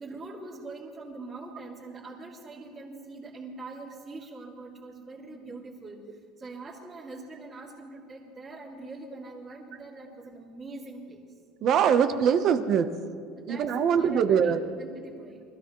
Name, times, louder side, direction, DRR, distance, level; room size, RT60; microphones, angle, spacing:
voice 1, 0.0-11.2 13.3-15.4, right 3 dB, 20° right, -10 dB, 3.3 m, -43 dB
voice 2, 11.6-12.9 13.5-14.6, right 7 dB, 40° right, 9 dB, 1.0 m, -23 dB
25.0 x 15.5 x 3.2 m, 2.2 s
cardioid pair, 155°, 0 cm